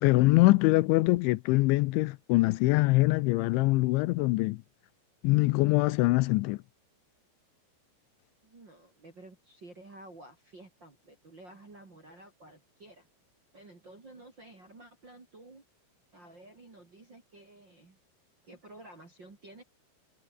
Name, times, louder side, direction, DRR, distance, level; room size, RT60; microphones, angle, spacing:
voice 1, 0.0-4.6 5.2-6.6, left 21 dB, 80° left, 2.9 m, -23 dB
voice 2, 8.4-13.1 13.5-15.6 16.1-18.0 18.4-19.6, right 2 dB, 25° right, 3.2 m, -52 dB
omnidirectional pair, 5.6 m